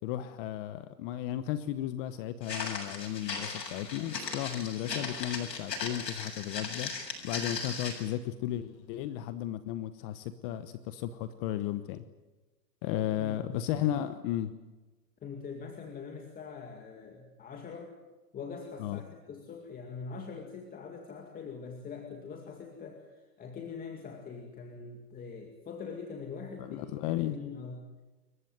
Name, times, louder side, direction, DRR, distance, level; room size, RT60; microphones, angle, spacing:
voice 1, 0.0-6.9 7.2-12.1 12.8-14.5 18.8-19.0 26.6-27.4, left 12 dB, 35° left, 12 dB, 1.1 m, -34 dB
Walk footsteps, 2.4-8.1, left 4 dB, 90° left, 7.7 m, -38 dB
voice 2, 12.9-13.6 15.2-17.9 18.3-26.9 27.1-27.8, left 5 dB, 20° left, 3 dB, 2.3 m, -43 dB
28.0 x 15.0 x 9.4 m, 1.2 s
hypercardioid pair, 140°, 48 cm